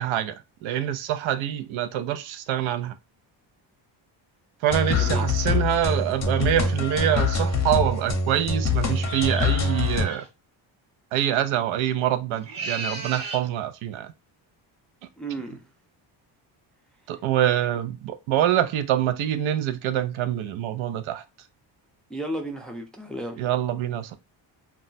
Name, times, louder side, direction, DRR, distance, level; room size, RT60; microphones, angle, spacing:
voice 1, 0.0-2.9 4.6-10.2 11.1-14.1 17.1-21.2 23.4-24.2, right 11 dB, 85° right, 0.5 m, -25 dB
sound 1, 4.7-10.1, left 4 dB, 35° left, 0.7 m, -24 dB
voice 2, 4.9-5.2 15.2-15.6 22.1-23.4, right 1 dB, ahead, 0.4 m, -33 dB
sound 2, 9.0-10.3 12.3-13.5, right 4 dB, 45° right, 0.9 m, -34 dB
2.3 x 2.0 x 3.9 m
cardioid pair, 125°, 46 cm